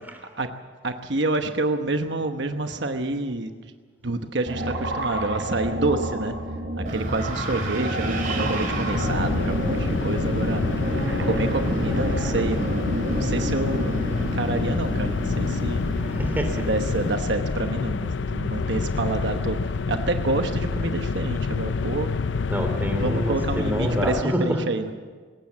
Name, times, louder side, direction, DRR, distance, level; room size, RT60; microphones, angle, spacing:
voice 1, 0.8-3.7 4.0-6.3 6.8-10.6 11.2-15.8 16.5-22.3 23.0-24.9, right 2 dB, 65° right, 6 dB, 1.1 m, -28 dB
sound 1, 4.5-13.9, right 1 dB, 85° right, 4.3 m, -31 dB
Wind, 6.9-17.1, equal, 45° right, 4.8 m, -29 dB
sound 2, 8.9-24.2, left 4 dB, 75° left, 0.5 m, -28 dB
voice 2, 16.0-16.7 22.5-24.6, equal, 10° right, 4 dB, 3.2 m, -26 dB
21.0 x 18.0 x 7.4 m, 1.5 s
head